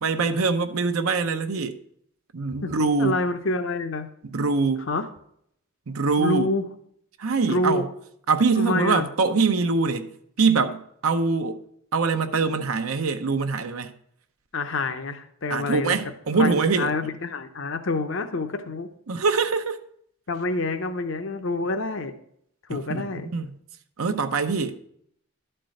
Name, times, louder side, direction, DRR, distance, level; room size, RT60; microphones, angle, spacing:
voice 1, 0.0-1.8 2.3-3.2 4.2-4.9 5.9-6.5 7.2-7.9 8.3-10.1 10.4-11.6 11.9-13.9 15.5-16.9 19.1-19.8 22.7-23.5 24.0-24.8, right 4 dB, 80° right, 0.7 m, -23 dB
voice 2, 3.0-4.1 4.9-5.1 6.2-6.6 7.5-7.9 8.6-9.1 14.5-16.1 16.4-18.9 20.3-22.1 22.7-23.3, left 2 dB, 60° left, 0.8 m, -27 dB
11.5 x 4.5 x 6.4 m
head